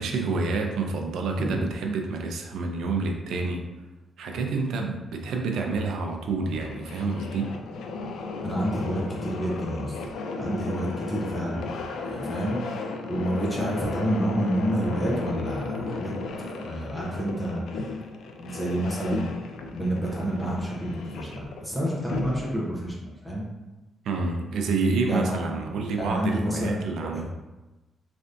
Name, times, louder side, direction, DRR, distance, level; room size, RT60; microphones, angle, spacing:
voice 1, 0.0-3.6 4.2-7.5 21.1-21.3 24.0-27.2, right 3 dB, 80° right, 2 dB, 0.4 m, -28 dB
sound 1, 6.3-22.7, left 3 dB, 90° left, 0.3 m, -35 dB
voice 2, 8.4-10.0 10.4-11.6 12.0-16.1 16.4-17.9 18.4-19.3 19.7-22.9 23.2-23.5 25.0-25.4 25.9-27.2, right 1 dB, 5° left, -5 dB, 0.6 m, -29 dB
3.3 x 2.5 x 2.5 m, 1.1 s
cardioid pair, 150°, 0 cm